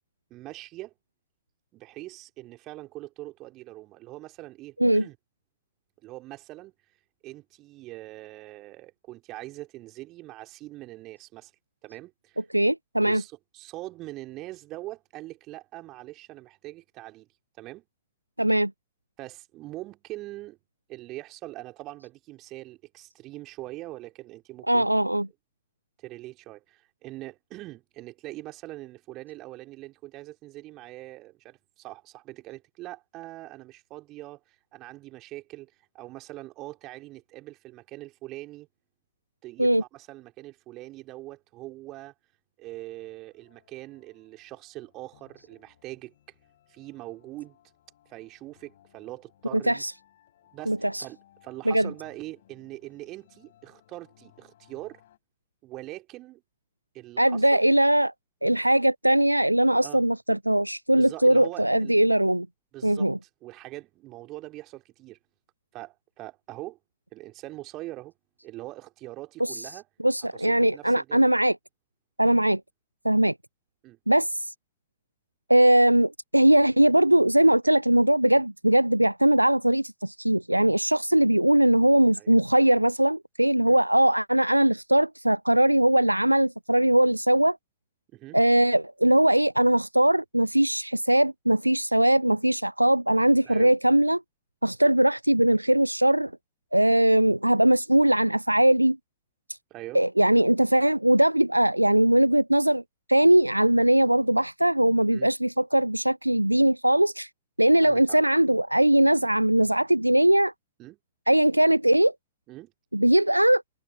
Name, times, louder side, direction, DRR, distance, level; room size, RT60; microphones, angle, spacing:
voice 1, 0.3-0.9 1.7-5.2 6.0-6.7 7.2-11.5 11.8-12.4 13.0-17.3 17.6-17.9 19.2-20.6 20.9-24.9 26.0-34.4 34.7-38.7 39.4-42.1 42.6-46.1 46.7-47.6 48.1-49.8 50.5-55.0 55.6-56.4 56.9-57.6 59.8-60.0 60.9-61.9 62.7-63.1 63.4-65.2 65.7-66.8 67.1-68.1 68.4-69.8 70.3-71.2 73.8-74.0 82.2-82.3 83.7-83.8 88.1-88.4 93.4-93.7 99.7-100.0 105.1-105.3 107.8-108.2 110.8-111.0 112.5-112.7, right 17 dB, 35° right, 3.8 m, -42 dB
voice 2, 12.5-13.2 18.4-18.7 24.7-25.3 39.6-39.8 49.7-49.9 50.7-51.0 51.7-51.9 57.2-58.1 58.4-62.5 62.8-63.2 69.5-69.6 70.0-71.6 72.2-72.6 73.0-73.3 74.1-74.5 75.5-87.6 88.3-94.2 94.6-96.3 96.7-99.0 99.9-102.8 103.1-107.3 107.6-110.5 111.3-112.1 112.9-113.6, right 1 dB, 85° right, 0.4 m, -20 dB
sound 1, 42.6-55.2, left 12 dB, 60° left, 6.1 m, -62 dB
figure-of-eight pair, 90°, 0 cm